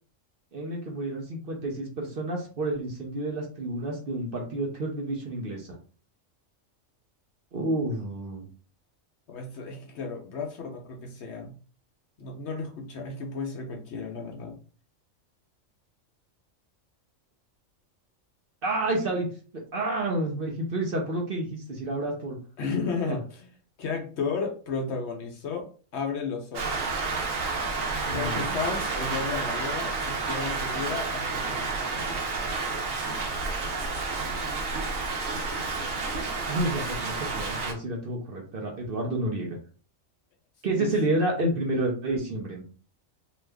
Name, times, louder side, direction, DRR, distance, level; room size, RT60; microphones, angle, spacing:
voice 1, 0.5-5.7 7.5-8.5 18.6-19.3 19.7-22.4 23.1-23.2 28.1-28.6 36.5-39.6 40.6-42.6, right 2 dB, 50° right, 0 dB, 0.8 m, -29 dB
voice 2, 9.3-11.5 12.2-14.6 22.6-23.5 23.8-25.7 25.9-26.9 28.1-32.1 40.8-40.9, left 4 dB, 60° left, 3 dB, 0.9 m, -33 dB
Rain, 26.5-37.7, right 3 dB, 80° right, 1.2 m, -30 dB
2.9 x 2.4 x 3.3 m, 0.40 s
omnidirectional pair, 1.4 m